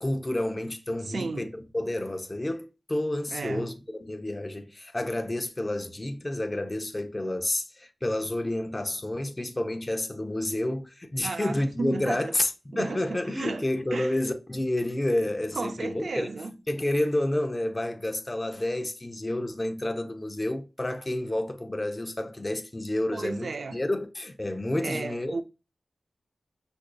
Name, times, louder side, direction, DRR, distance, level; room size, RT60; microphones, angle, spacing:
voice 1, 0.0-16.3 16.7-25.3, left 1 dB, 25° left, 0.6 m, -30 dB
voice 2, 1.1-1.5 3.3-3.7 11.2-12.3 12.7-13.6 13.9-14.2 15.5-16.5 23.1-23.8 24.8-25.4, right 3 dB, 65° right, 0.3 m, -34 dB
5.8 x 2.6 x 2.2 m
wide cardioid pair, 90°, 0 cm